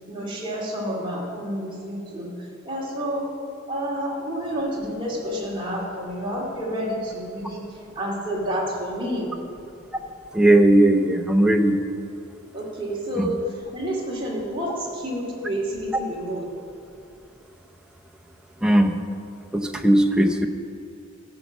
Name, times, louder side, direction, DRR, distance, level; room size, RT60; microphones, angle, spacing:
voice 1, 0.1-3.3 3.7-9.4 12.5-16.5, equal, 25° right, -3 dB, 2.3 m, -29 dB
voice 2, 10.3-11.8 13.2-13.3 18.6-19.0 19.5-20.5, right 1 dB, 5° right, 3 dB, 0.6 m, -18 dB
14.0 x 5.9 x 7.1 m, 2.6 s
head